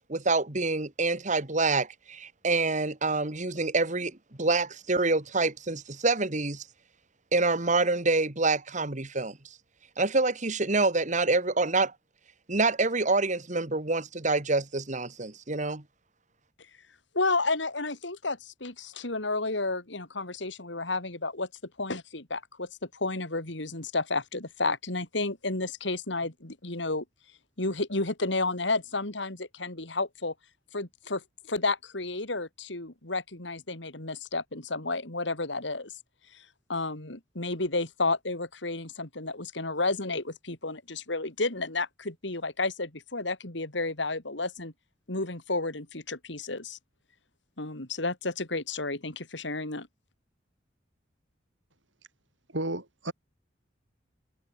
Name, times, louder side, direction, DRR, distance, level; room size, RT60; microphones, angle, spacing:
voice 1, 0.1-6.6 7.3-9.4 10.0-11.9 12.5-15.8, right 3 dB, 40° right, 2.1 m, -26 dB
voice 2, 17.1-21.5 21.8-27.0 27.6-30.3 30.7-35.9 36.3-36.4 36.7-44.7 45.1-46.8 47.6-49.9, left 3 dB, 70° left, 3.2 m, -31 dB
voice 3, 52.5-53.1, right 1 dB, 80° right, 5.6 m, -32 dB
head